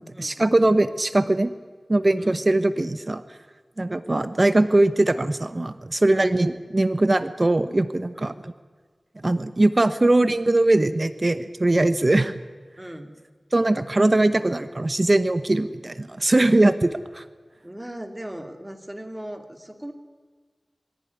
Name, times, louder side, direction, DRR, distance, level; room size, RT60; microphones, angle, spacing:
voice 1, 0.0-1.5 1.9-3.2 3.8-8.5 9.2-12.3 13.5-17.2, right 2 dB, 40° right, 13 dB, 1.0 m, -21 dB
voice 2, 12.8-13.1 17.6-19.9, right 1 dB, 15° right, 6 dB, 2.8 m, -38 dB
22.5 x 15.5 x 9.6 m, 1.5 s
wide cardioid pair, 50°, 0 cm